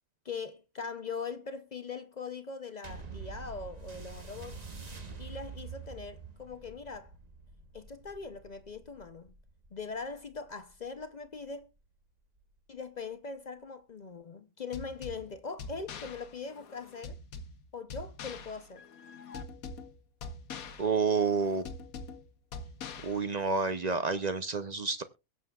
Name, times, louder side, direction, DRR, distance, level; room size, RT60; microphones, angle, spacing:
voice 1, 0.2-4.6 5.2-7.1 7.7-9.3 9.7-11.7 12.7-17.2 17.7-18.8, left 5 dB, 55° left, 0.5 m, -41 dB
sound 1, 2.8-11.6 12.4-12.5, right 5 dB, 30° right, 1.2 m, -47 dB
sound 2, 14.7-23.7, left 4 dB, 70° left, 1.4 m, -45 dB
voice 2, 20.8-21.6 23.0-25.0, right 4 dB, 55° right, 0.4 m, -29 dB
22.5 x 7.5 x 2.3 m
omnidirectional pair, 1.5 m